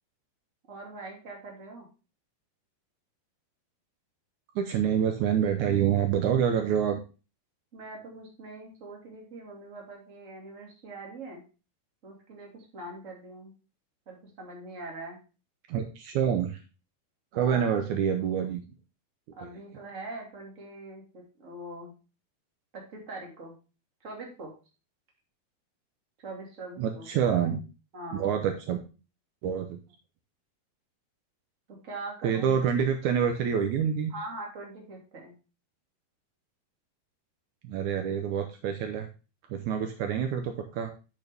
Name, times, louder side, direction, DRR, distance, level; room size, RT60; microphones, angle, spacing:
voice 1, 0.7-1.9 7.7-11.4 12.0-13.5 14.0-15.2 17.3-17.7 19.4-21.9 22.7-23.5 24.0-24.5 26.2-27.1 27.4-27.5 27.9-28.3 31.8-32.5 34.1-35.3, right 2 dB, 30° right, -1 dB, 1.6 m, -42 dB
voice 2, 4.5-7.0 15.7-16.6 17.3-18.6 26.8-27.6 28.1-28.8 29.4-29.8 32.2-34.1 37.6-39.1 39.5-40.9, right 8 dB, 90° right, 5 dB, 1.6 m, -27 dB
8.3 x 6.6 x 3.4 m, 0.33 s
omnidirectional pair, 4.5 m